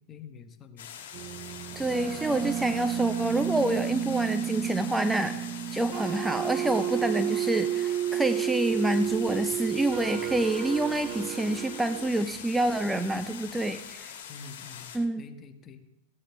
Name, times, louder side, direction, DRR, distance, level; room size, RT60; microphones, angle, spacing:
voice 1, 0.1-0.9 14.3-14.9 15.2-15.9, left 5 dB, 30° left, 7 dB, 1.3 m, -46 dB
sound 1, 0.8-15.0, left 8 dB, 65° left, 1.8 m, -44 dB
sound 2, 1.1-12.1, right 10 dB, 40° right, 0.8 m, -31 dB
voice 2, 1.8-14.1 14.9-15.2, right 1 dB, 5° right, 9 dB, 0.5 m, -28 dB
Accelerating revving vroom, 8.7-13.9, right 6 dB, 55° right, 1.8 m, -50 dB
15.5 x 9.8 x 3.4 m, 0.97 s
hypercardioid pair, 95°, 0 cm